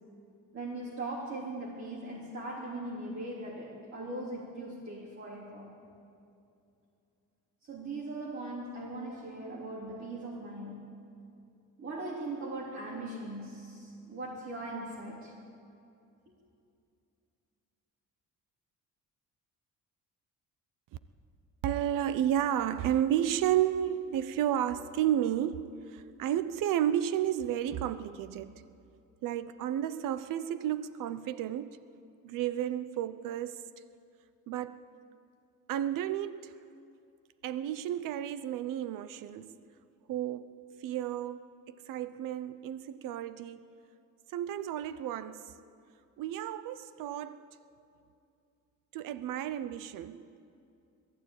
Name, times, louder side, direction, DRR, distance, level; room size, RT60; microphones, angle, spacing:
voice 1, 0.5-5.7 7.6-11.0 11.8-15.4, right 2 dB, 40° right, -5 dB, 3.5 m, -40 dB
voice 2, 21.6-28.6 29.2-31.8 32.2-33.6 34.5-34.8 35.7-36.5 37.4-39.5 40.1-40.5 40.8-41.4 41.7-43.6 44.3-45.5 46.2-47.4 48.9-50.3, right 11 dB, 75° right, 13 dB, 0.8 m, -32 dB
21.5 x 15.0 x 8.9 m, 2.6 s
cardioid pair, 155°, 33 cm